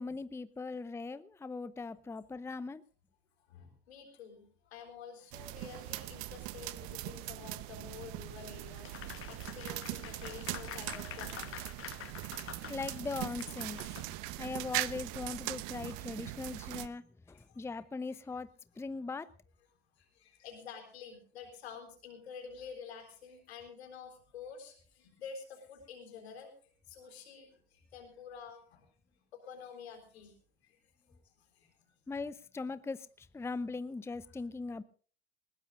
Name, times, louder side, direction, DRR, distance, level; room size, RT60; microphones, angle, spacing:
voice 1, 0.0-2.8 12.7-13.8 14.4-18.5 18.8-19.3 32.1-34.8, left 3 dB, 10° left, 16 dB, 0.6 m, -40 dB
voice 2, 3.5-11.9 12.4-12.7 15.3-15.4 15.7-15.9 16.5-16.6 17.3-17.6 18.1-18.2 18.7-18.8 20.0-26.5 26.9-28.9 29.3-30.3 30.6-30.8 31.2-31.7 34.3-34.4, left 6 dB, 85° left, 4 dB, 3.9 m, -50 dB
sound 1, 5.3-16.9, right 18 dB, 65° right, 0.9 m, -41 dB
Applause, 8.8-14.4, left 13 dB, 45° left, 1.0 m, -47 dB
20.0 x 18.0 x 2.5 m, 0.42 s
hypercardioid pair, 70°, 31 cm